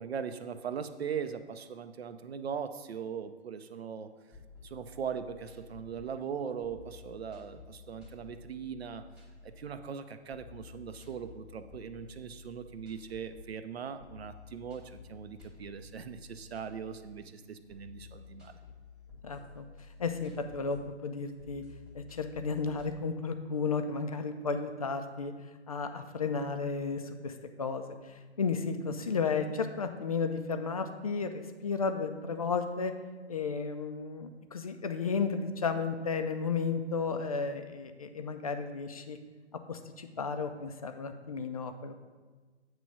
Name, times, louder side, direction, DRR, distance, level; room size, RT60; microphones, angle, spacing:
voice 1, 0.0-4.1 4.6-9.0 9.4-18.6, right 7 dB, 65° right, 10 dB, 0.6 m, -40 dB
sound 1, 4.1-23.0, left 4 dB, 5° right, 0.7 m, -53 dB
voice 2, 19.2-19.6 20.0-21.6 21.9-25.3 25.7-27.3 27.6-32.9 33.3-39.2 39.7-41.9, left 5 dB, 35° left, 7 dB, 0.4 m, -33 dB
8.3 x 3.1 x 6.1 m, 1.3 s
hypercardioid pair, 150°, 34 cm